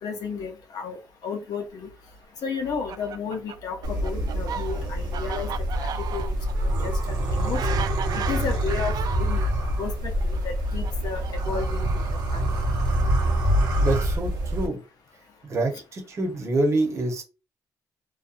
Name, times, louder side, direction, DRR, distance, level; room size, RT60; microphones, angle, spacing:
voice 1, 0.0-1.9 2.4-5.5 5.8-6.2 6.6-7.8 8.1-9.5 9.8-11.9 12.3-12.4, left 5 dB, 65° left, 0.7 m, -33 dB
Fowl, 2.6-9.5 10.3-12.4, right 8 dB, 65° right, 0.3 m, -37 dB
sound 1, 3.8-14.7, right 1 dB, 90° right, 0.7 m, -25 dB
voice 2, 13.8-14.8 15.5-17.2, right 2 dB, 45° right, 0.9 m, -26 dB
2.7 x 2.2 x 2.5 m
cardioid pair, 95°, 7 cm